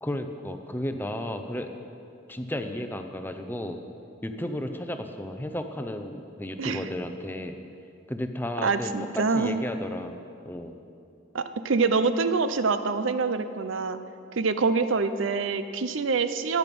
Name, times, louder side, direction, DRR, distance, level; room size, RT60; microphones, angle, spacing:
voice 1, 0.0-1.8 2.3-3.8 4.2-7.6 8.1-10.2 10.4-10.8, left 1 dB, 10° left, 6 dB, 0.6 m, -33 dB
voice 2, 8.6-9.6 11.3-14.0 14.4-16.6, right 4 dB, 75° right, 10 dB, 0.6 m, -25 dB
14.5 x 10.5 x 5.4 m, 2.5 s
head